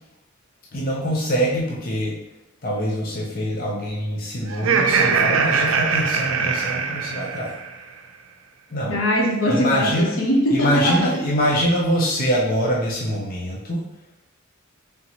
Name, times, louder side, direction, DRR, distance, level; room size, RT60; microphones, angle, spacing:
voice 1, 0.7-2.2 2.6-7.5 8.7-9.0 9.5-10.2 10.5-13.8, equal, 45° left, -3 dB, 0.7 m, -24 dB
Laughter, 4.5-7.7, right 5 dB, 75° right, 0.5 m, -21 dB
voice 2, 8.9-11.2, equal, 75° left, 0 dB, 0.9 m, -21 dB
4.1 x 3.5 x 2.9 m, 0.86 s
head